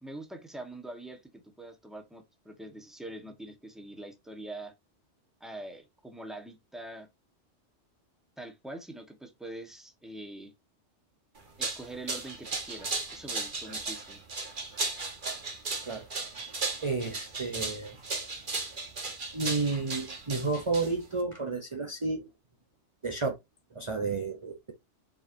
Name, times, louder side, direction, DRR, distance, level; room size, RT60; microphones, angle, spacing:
voice 1, 0.0-4.7 5.4-7.1 8.4-10.5 11.6-14.2, right 1 dB, ahead, 1.4 m, -44 dB
sound 1, 11.4-21.2, right 3 dB, 45° right, 1.7 m, -36 dB
voice 2, 16.4-18.0 19.3-22.3 23.0-23.4 23.7-24.7, right 3 dB, 30° right, 0.9 m, -32 dB
7.7 x 4.8 x 2.8 m
omnidirectional pair, 1.2 m